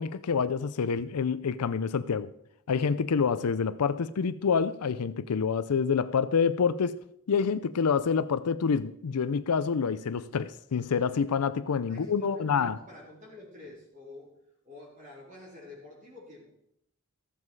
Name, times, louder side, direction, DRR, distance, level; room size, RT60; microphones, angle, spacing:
voice 1, 0.0-2.3 2.7-7.0 7.3-12.7, left 6 dB, 90° left, 0.5 m, -27 dB
voice 2, 11.9-14.3 14.6-16.5, left 2 dB, 35° right, 3.9 m, -48 dB
14.0 x 7.6 x 4.7 m
head